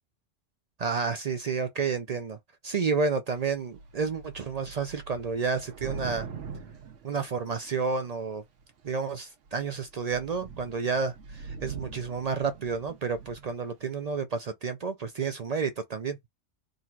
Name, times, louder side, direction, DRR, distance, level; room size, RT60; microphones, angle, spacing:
voice 1, 0.8-2.4 2.6-6.3 7.0-8.4 8.8-16.2, right 5 dB, 60° right, 0.4 m, -30 dB
Thunder / Rain, 3.4-3.5 3.7-7.9 8.6-9.0 9.5-9.6 9.9-13.6, right 5 dB, 75° right, 1.2 m, -43 dB
3.8 x 2.5 x 4.4 m
omnidirectional pair, 1.3 m